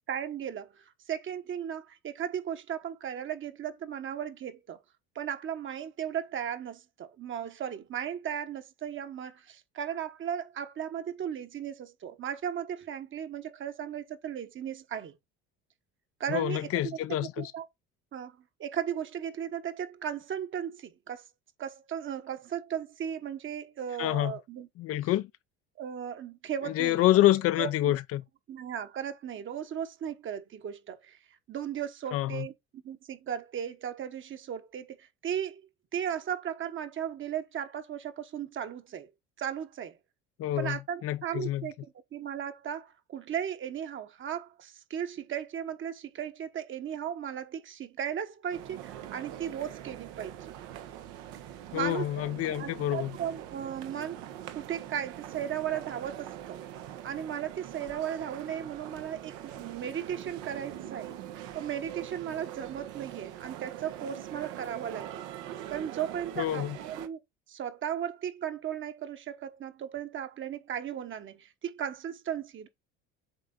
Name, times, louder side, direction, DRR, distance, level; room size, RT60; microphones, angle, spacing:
voice 1, 0.1-4.8 5.1-15.2 16.2-17.0 17.4-17.7 18.1-21.2 21.6-24.7 25.8-27.1 27.6-28.0 28.5-31.2 31.5-35.6 35.9-39.1 39.4-40.0 40.6-41.7 42.1-50.6 51.7-54.2 54.5-56.6 57.0-61.2 61.5-65.3 65.7-67.2 67.5-72.7, right 9 dB, 40° right, 1.2 m, -36 dB
voice 2, 16.3-17.5 24.0-24.3 24.8-25.3 26.7-28.2 32.1-32.5 40.4-41.7 51.7-53.1 66.4-66.8, left 14 dB, 50° left, 0.6 m, -27 dB
sound 1, 48.5-67.1, right 12 dB, 80° right, 1.1 m, -43 dB
8.0 x 3.4 x 3.9 m
supercardioid pair, 100°, 29 cm